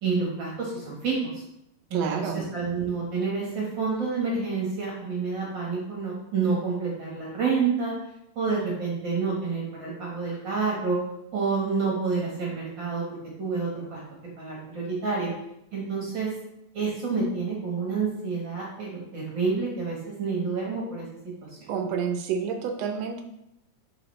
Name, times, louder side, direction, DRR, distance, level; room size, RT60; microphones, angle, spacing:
voice 1, 0.0-1.4 1.9-7.9 8.3-11.0 11.3-13.0 13.4-14.0 14.4-15.3 15.7-16.3 16.7-21.0, right 4 dB, 50° right, -4 dB, 1.6 m, -28 dB
voice 2, 1.9-2.4 21.7-23.2, right 6 dB, 75° right, 5 dB, 1.6 m, -29 dB
7.6 x 4.8 x 3.2 m, 0.82 s
omnidirectional pair, 3.4 m